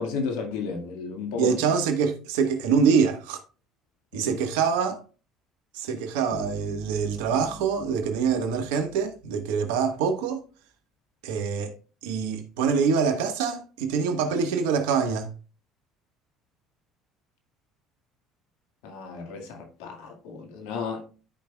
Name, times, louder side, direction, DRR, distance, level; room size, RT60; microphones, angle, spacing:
voice 1, 0.0-1.6 4.1-4.3 18.8-21.0, left 5 dB, 75° left, 1.8 m, -33 dB
voice 2, 1.4-3.4 4.1-5.0 5.7-10.4 11.2-11.8 12.0-15.3, right 6 dB, 80° right, 1.2 m, -25 dB
sound 1, 6.3-9.3, equal, 45° left, 3.6 m, -42 dB
12.5 x 5.3 x 2.3 m
hypercardioid pair, 70°, 0 cm